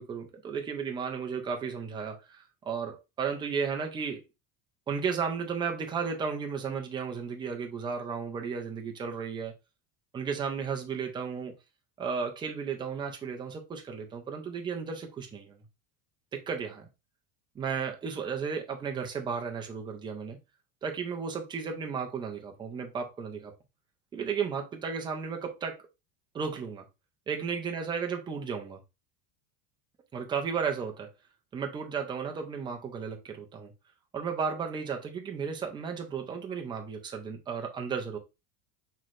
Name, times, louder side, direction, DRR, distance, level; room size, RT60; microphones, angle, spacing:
voice 1, 0.0-4.2 4.9-9.5 10.1-11.5 12.0-15.6 16.3-16.9 17.5-20.4 20.8-23.5 24.1-25.8 26.3-26.8 27.3-28.8 30.1-31.1 31.5-33.7 34.1-38.2, right 6 dB, 10° right, 0.4 m, -34 dB
5.7 x 3.2 x 2.5 m
cardioid pair, 165°, 42 cm